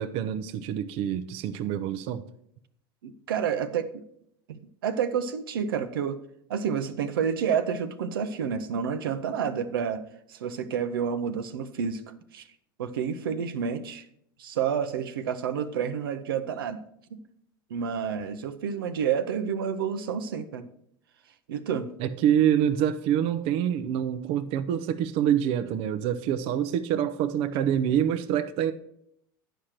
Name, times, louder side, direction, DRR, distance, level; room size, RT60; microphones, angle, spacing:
voice 1, 0.0-2.2 22.0-28.7, right 10 dB, 55° right, 0.7 m, -26 dB
voice 2, 3.0-4.0 4.5-6.2 6.5-10.0 10.3-12.0 12.3-12.5 12.8-14.1 14.4-16.8 17.1-17.2 17.7-20.7 21.5-21.9, right 7 dB, 85° right, 0.8 m, -29 dB
10.5 x 5.0 x 5.8 m
hypercardioid pair, 100°, 12 cm